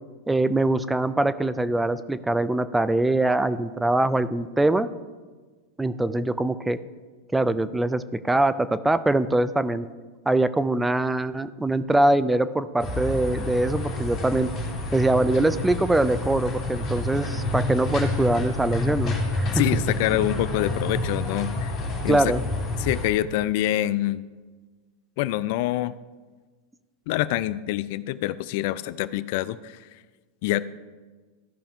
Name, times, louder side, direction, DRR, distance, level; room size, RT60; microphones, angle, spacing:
voice 1, 0.3-4.9 5.8-6.8 7.3-9.9 10.3-14.5 14.9-19.6 22.1-22.4, right 2 dB, 10° right, 14 dB, 0.4 m, -23 dB
sound 1, 12.8-23.1, left 2 dB, 30° left, 3.1 m, -29 dB
voice 2, 19.5-21.8 22.0-22.3 22.8-24.2 25.2-25.9 27.1-29.8 30.4-30.6, left 14 dB, 60° left, 17 dB, 0.3 m, -26 dB
14.5 x 5.6 x 3.6 m, 1.4 s
hypercardioid pair, 115°, 0 cm